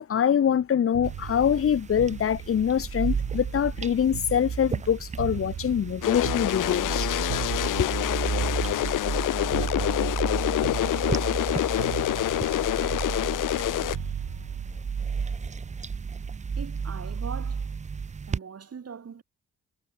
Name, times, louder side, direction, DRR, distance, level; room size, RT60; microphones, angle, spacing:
voice 1, 0.0-7.1 7.8-7.9, left 8 dB, 45° left, 0.9 m, -24 dB
sound 1, 0.9-4.9 5.2-9.2 9.5-10.3 10.6-11.5 11.8-15.8 17.0-17.2, right 21 dB, 90° right, 1.4 m, -40 dB
sound 2, 1.0-18.4, right 5 dB, 20° right, 0.5 m, -33 dB
sound 3, 6.0-14.0, left 14 dB, 75° left, 1.2 m, -27 dB
voice 2, 16.6-17.7 18.3-19.2, right 6 dB, 50° right, 6.6 m, -40 dB
supercardioid pair, 60°, 32 cm